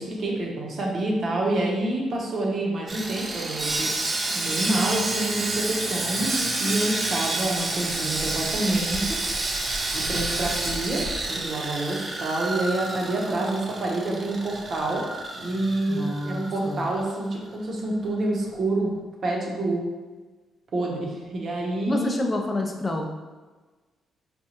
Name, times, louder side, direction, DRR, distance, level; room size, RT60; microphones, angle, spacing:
voice 1, 0.0-3.9 4.3-9.2 9.9-15.0 15.3-18.9 19.2-19.8 20.7-22.2, right 2 dB, 55° right, -2 dB, 0.8 m, -27 dB
Sawing, 2.9-17.1 17.4-17.6 18.0-18.2, right 2 dB, 30° right, 0.4 m, -29 dB
voice 2, 15.9-16.9 21.9-23.1, left 1 dB, 25° left, 2 dB, 0.4 m, -28 dB
4.2 x 2.3 x 2.8 m, 1.3 s
cardioid pair, 90°, 0 cm